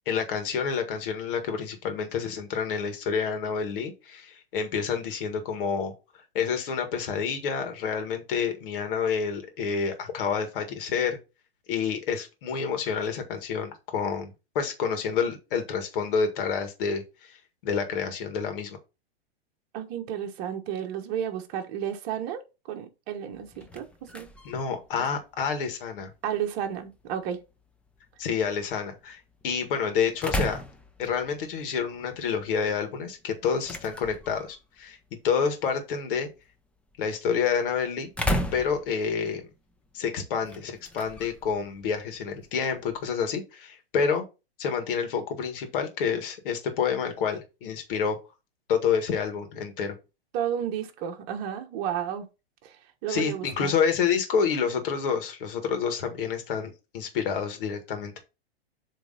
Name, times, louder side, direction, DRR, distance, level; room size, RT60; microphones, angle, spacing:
voice 1, 0.1-11.2 11.7-18.8 24.4-26.1 28.2-30.6 31.0-35.0 35.2-36.3 37.0-38.1 38.5-39.5 39.9-44.2 44.6-48.2 48.7-50.0 53.1-58.2, left 6 dB, 60° left, 1.9 m, -28 dB
voice 2, 19.7-24.3 26.2-27.4 50.3-52.3 52.6-52.8 53.0-53.7, right 9 dB, 40° right, 1.2 m, -32 dB
sound 1, 23.3-43.2, left 1 dB, 5° left, 0.6 m, -38 dB
7.4 x 3.4 x 4.1 m
hypercardioid pair, 125°, 31 cm